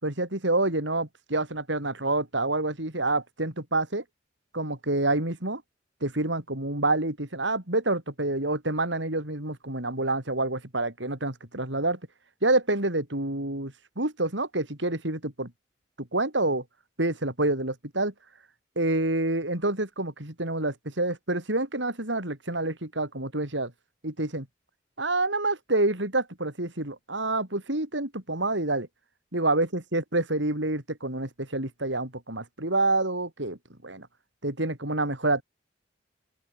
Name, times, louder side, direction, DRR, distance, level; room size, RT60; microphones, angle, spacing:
voice 1, 0.0-4.0 4.5-5.6 6.0-12.0 12.4-15.5 16.0-16.6 17.0-18.1 18.8-23.7 24.0-24.5 25.0-28.9 29.3-33.6 33.8-34.1 34.4-35.4, right 2 dB, 75° right, 5.3 m, -27 dB
open air
head